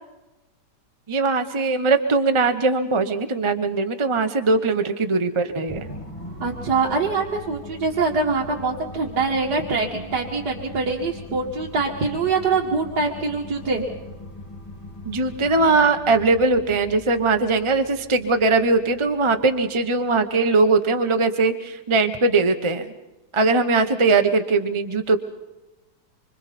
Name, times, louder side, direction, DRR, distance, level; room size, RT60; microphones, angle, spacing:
voice 1, 1.1-5.9 15.0-22.9 23.3-25.2, right 3 dB, 30° right, 7 dB, 0.6 m, -20 dB
sound 1, 5.7-20.2, left 1 dB, 15° left, 2.3 m, -40 dB
voice 2, 6.4-13.8, right 4 dB, 65° right, -2 dB, 2.5 m, -24 dB
26.0 x 25.5 x 4.2 m, 1.0 s
omnidirectional pair, 1.9 m